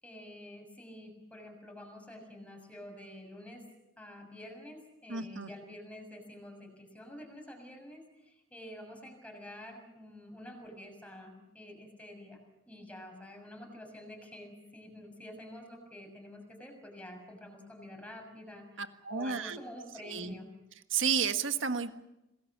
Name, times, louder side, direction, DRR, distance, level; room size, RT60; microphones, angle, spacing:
voice 1, 0.0-3.6 4.0-12.4 12.7-18.8 19.1-20.5, left 1 dB, 5° left, 2 dB, 6.6 m, -48 dB
voice 2, 5.1-5.5 18.8-19.6 20.0-20.3 20.9-21.9, right 6 dB, 85° right, 8 dB, 1.6 m, -32 dB
27.0 x 19.5 x 7.3 m, 0.91 s
head